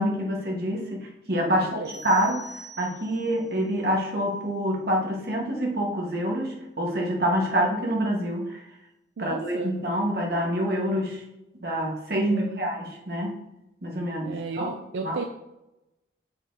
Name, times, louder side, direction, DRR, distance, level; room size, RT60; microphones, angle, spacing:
voice 1, 0.0-2.5 2.8-8.6 9.2-11.2 11.6-13.4 13.8-14.7 15.0-15.2, equal, 55° right, -1 dB, 1.2 m, -26 dB
voice 2, 1.5-2.0 9.2-9.7 12.3-12.7 14.2-15.2, right 4 dB, 85° right, 4 dB, 0.4 m, -34 dB
sound 1, 1.8-3.4, equal, 20° right, 2.3 m, -44 dB
6.6 x 5.7 x 2.6 m, 0.93 s
head